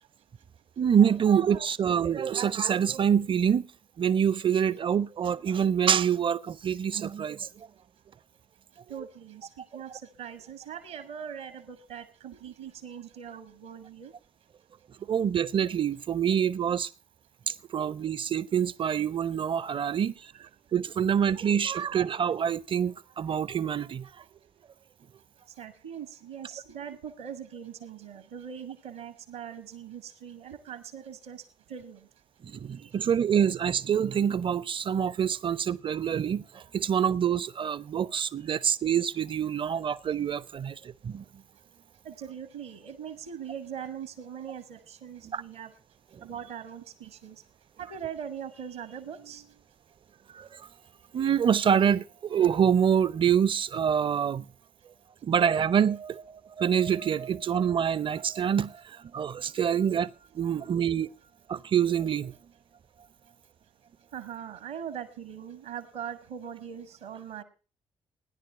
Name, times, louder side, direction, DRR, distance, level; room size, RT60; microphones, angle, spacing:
voice 1, 0.8-3.7 4.0-7.7 15.1-16.9 17.5-20.1 20.4-24.1 32.4-41.2 45.3-45.4 50.3-50.6 51.1-54.4 55.2-61.1 61.5-62.3, right 8 dB, 35° right, 0.5 m, -26 dB
voice 2, 8.9-14.1 25.6-31.4 31.7-32.0 32.8-33.1 39.7-39.8 42.0-45.7 46.2-47.4 47.8-49.5 64.1-67.4, right 8 dB, 70° right, 1.1 m, -41 dB
16.0 x 10.5 x 4.3 m
figure-of-eight pair, 40°, 15 cm